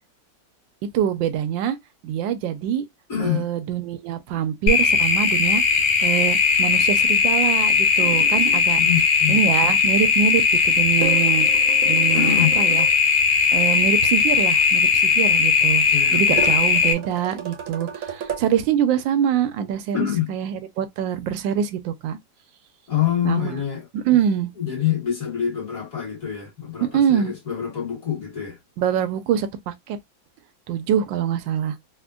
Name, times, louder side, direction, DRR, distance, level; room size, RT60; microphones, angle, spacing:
voice 1, 0.9-1.8 2.0-2.8 3.2-5.6 6.0-8.8 9.3-11.5 11.8-12.9 13.5-15.8 16.1-22.2 23.2-23.5 23.9-24.5 26.9-27.3 28.8-30.0 30.7-31.8, right 9 dB, 80° right, 1.3 m, -24 dB
voice 2, 3.1-3.5 8.8-9.5 12.1-12.6 15.9-16.5 19.9-20.3 22.9-23.9 24.6-28.6, left 10 dB, 45° left, 2.0 m, -26 dB
sound 1, 4.7-16.9, left 5 dB, 70° left, 1.5 m, -18 dB
sound 2, 8.0-8.7 11.0-12.9 16.4-18.5, right 7 dB, 60° right, 0.9 m, -33 dB
4.3 x 2.2 x 2.3 m
omnidirectional pair, 2.2 m